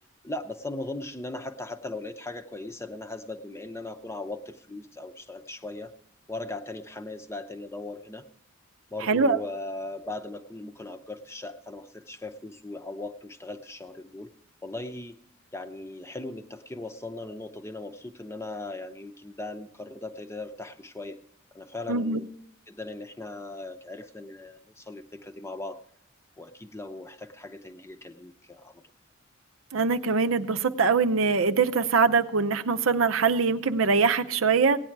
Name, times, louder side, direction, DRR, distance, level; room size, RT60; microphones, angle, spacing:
voice 1, 0.2-5.9 6.3-8.3 8.9-14.3 14.6-15.2 15.5-21.2 21.5-22.3 22.7-25.8 26.4-28.8, left 2 dB, 15° left, 7 dB, 0.7 m, -38 dB
voice 2, 9.1-9.4 21.9-22.2 29.7-34.8, right 4 dB, 80° right, 9 dB, 0.7 m, -23 dB
17.0 x 9.5 x 4.6 m, 0.69 s
head